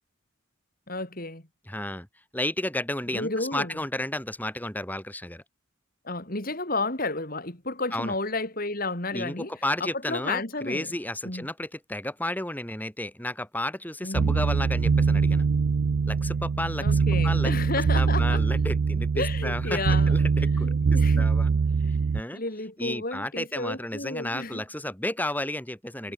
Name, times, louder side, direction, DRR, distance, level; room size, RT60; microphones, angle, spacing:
voice 1, 0.9-1.4 3.1-3.8 6.1-9.5 9.8-10.9 11.2-11.5 14.0-14.4 16.8-18.4 19.2-20.2 20.6-21.3 22.3-24.6, left 2 dB, 45° left, 3.4 m, -32 dB
voice 2, 1.7-2.1 2.3-5.4 7.9-8.1 9.1-15.5 16.1-17.6 17.9-21.5 22.1-22.4 22.8-26.1, left 1 dB, 10° left, 3.6 m, -32 dB
sound 1, 14.1-22.2, right 5 dB, 70° right, 0.5 m, -23 dB
head